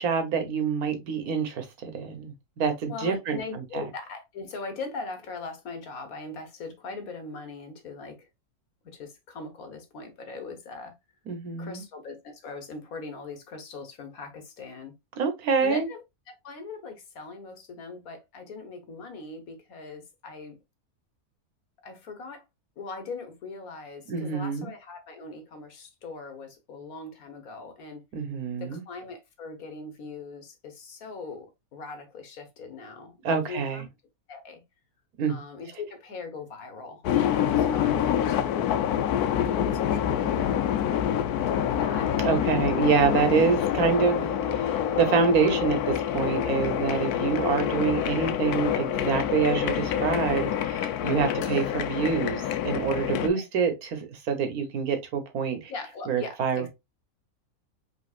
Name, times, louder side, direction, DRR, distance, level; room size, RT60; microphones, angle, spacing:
voice 1, 0.0-3.8 11.3-11.8 15.2-15.9 24.1-24.7 28.1-28.8 33.2-33.8 35.2-35.4 42.2-55.7 56.1-56.7, right 6 dB, 80° right, 1.5 m, -26 dB
voice 2, 2.9-8.2 8.8-10.9 11.6-14.9 15.6-16.0 16.3-20.6 21.8-22.4 22.8-28.0 28.6-33.9 34.3-34.6 35.3-38.8 39.2-42.1 45.2-45.6 53.3-53.4 55.7-56.7, left 4 dB, 70° left, 1.6 m, -40 dB
sound 1, 37.0-53.3, left 10 dB, 90° left, 1.1 m, -26 dB
5.2 x 3.4 x 2.4 m
omnidirectional pair, 1.6 m